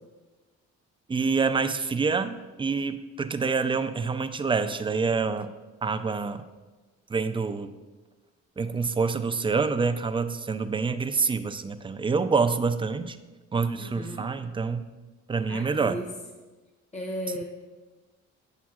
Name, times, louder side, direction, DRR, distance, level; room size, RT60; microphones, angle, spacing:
voice 1, 1.1-5.5 5.8-6.5 7.1-7.7 8.6-13.2 13.5-14.9 15.3-16.0, right 4 dB, 20° right, 9 dB, 0.3 m, -27 dB
voice 2, 13.8-14.2 15.5-16.1 16.9-17.4, equal, 25° left, 1 dB, 0.9 m, -35 dB
8.3 x 7.2 x 2.4 m, 1.2 s
cardioid pair, 90°, 30 cm